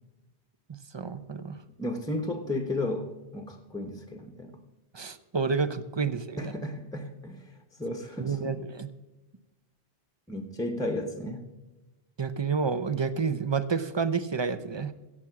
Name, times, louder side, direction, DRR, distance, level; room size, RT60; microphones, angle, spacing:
voice 1, 0.7-1.6 4.9-6.5 8.2-8.9 12.2-14.9, right 5 dB, 30° right, 13 dB, 0.5 m, -29 dB
voice 2, 1.8-4.6 6.4-8.6 10.3-11.5, left 1 dB, 5° left, 4 dB, 0.8 m, -34 dB
16.0 x 7.5 x 5.9 m, 1.1 s
omnidirectional pair, 1.1 m